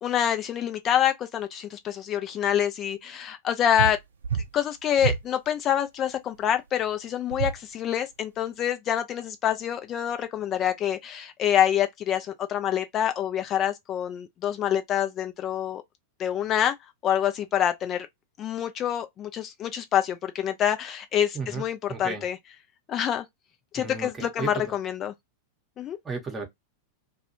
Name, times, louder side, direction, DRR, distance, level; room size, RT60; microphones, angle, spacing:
voice 1, 0.0-4.0 4.5-15.8 16.2-16.7 17.0-18.1 18.4-22.4 22.9-23.2 23.7-25.1 25.8-26.0, left 10 dB, 30° left, 0.4 m, -26 dB
sound 1, 3.7-4.0 4.2-4.5 5.0-5.2 7.3-7.6, right 7 dB, 70° right, 0.5 m, -27 dB
voice 2, 21.3-22.2 23.7-24.8 26.0-26.5, right 4 dB, 15° right, 0.8 m, -34 dB
2.3 x 2.2 x 2.7 m
figure-of-eight pair, 90°, 0 cm